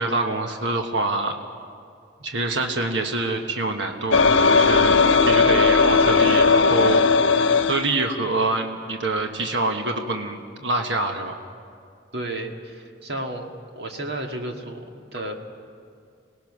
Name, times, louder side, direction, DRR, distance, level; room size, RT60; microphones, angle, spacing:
voice 1, 0.0-1.3 2.2-7.0 7.7-11.4, right 2 dB, 75° right, 4 dB, 1.4 m, -26 dB
sound 1, 4.1-7.9, left 4 dB, 85° left, 0.9 m, -17 dB
voice 2, 12.1-15.3, right 1 dB, 60° right, 3 dB, 1.9 m, -33 dB
26.5 x 19.0 x 6.2 m, 2.3 s
head